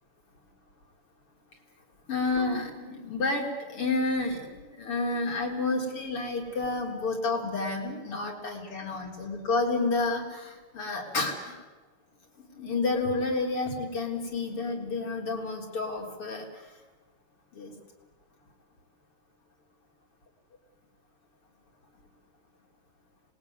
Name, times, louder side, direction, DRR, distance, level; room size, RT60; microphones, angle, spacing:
voice 1, 2.1-11.6 12.6-16.5 17.5-17.7, left 3 dB, 90° left, 1 dB, 5.0 m, -30 dB
26.0 x 20.5 x 9.6 m, 1.3 s
omnidirectional pair, 2.4 m